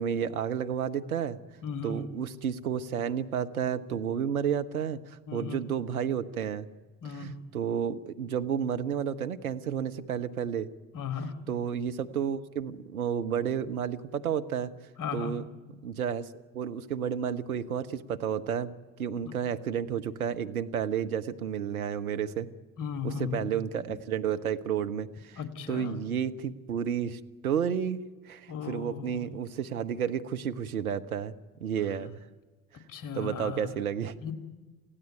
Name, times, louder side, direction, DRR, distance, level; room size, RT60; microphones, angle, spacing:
voice 1, 0.0-1.4 1.8-6.7 7.1-10.7 11.5-14.7 15.1-15.4 15.8-18.7 19.0-22.5 23.0-25.4 25.7-31.3 31.6-32.2 33.1-34.1, right 8 dB, 85° right, 9 dB, 1.0 m, -31 dB
voice 2, 1.6-2.0 5.3-5.6 7.0-7.3 10.9-11.4 15.0-15.3 19.2-19.4 22.8-23.5 25.4-26.0 28.5-29.3 32.7-33.7 34.2-34.3, left 6 dB, 50° left, 10 dB, 2.6 m, -36 dB
28.5 x 15.5 x 9.2 m, 1.3 s
figure-of-eight pair, 55°, 42 cm